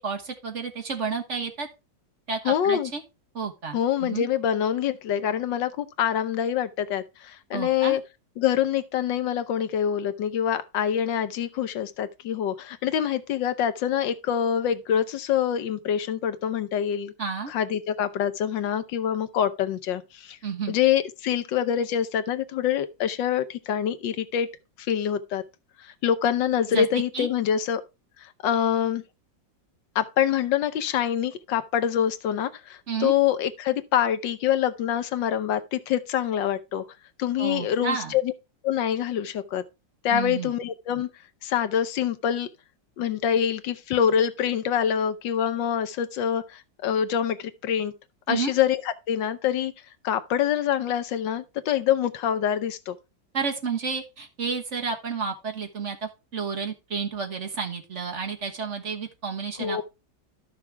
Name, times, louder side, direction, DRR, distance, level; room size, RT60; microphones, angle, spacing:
voice 1, 0.0-1.7 2.3-3.0 3.3-4.3 7.5-8.0 17.2-17.5 20.4-20.8 26.7-26.8 27.1-27.3 32.9-33.2 37.4-38.1 40.1-40.5 48.3-48.5 53.3-59.8, right 5 dB, 45° right, 1.4 m, -31 dB
voice 2, 2.4-2.9 3.7-8.0 8.4-17.1 17.5-20.4 20.7-24.5 24.9-25.4 26.0-27.8 28.2-29.0 29.9-36.8 37.2-38.3 38.6-39.6 40.0-41.1 41.4-42.5 43.0-47.9 48.3-49.7 50.0-52.9 59.6-59.8, left 9 dB, 75° left, 1.5 m, -25 dB
13.0 x 6.0 x 3.3 m
omnidirectional pair, 2.0 m